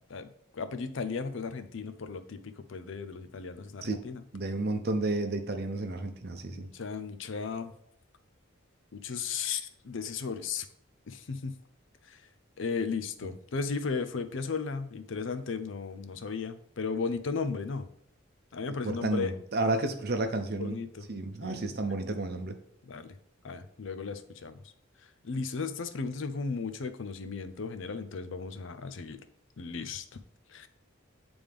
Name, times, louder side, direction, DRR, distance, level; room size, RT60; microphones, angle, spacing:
voice 1, 0.5-4.2 6.5-7.7 8.9-10.7 11.1-11.5 12.1-12.2 12.6-17.9 18.5-19.3 20.6-21.1 21.4-22.0 22.8-23.2 23.4-24.6 25.2-29.2 29.6-30.1 30.5-30.7, left 5 dB, 65° left, 10 dB, 0.5 m, -35 dB
voice 2, 4.3-6.7 18.8-20.8 21.1-22.6, right 2 dB, 50° right, 7 dB, 0.7 m, -31 dB
9.2 x 3.5 x 3.5 m, 0.69 s
head